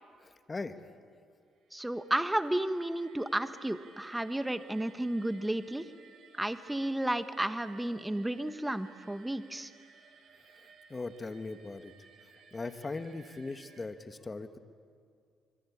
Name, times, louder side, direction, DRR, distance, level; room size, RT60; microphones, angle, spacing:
voice 1, 0.2-0.8 10.6-11.9 12.5-14.6, left 3 dB, 25° left, 9 dB, 1.6 m, -39 dB
sound 1, 1.6-13.9, right 6 dB, 70° right, 2.8 m, -59 dB
voice 2, 1.7-5.9 6.4-9.7, right 1 dB, 10° right, 11 dB, 1.2 m, -32 dB
26.0 x 23.0 x 8.7 m, 2.2 s
cardioid pair, 90°, 0 cm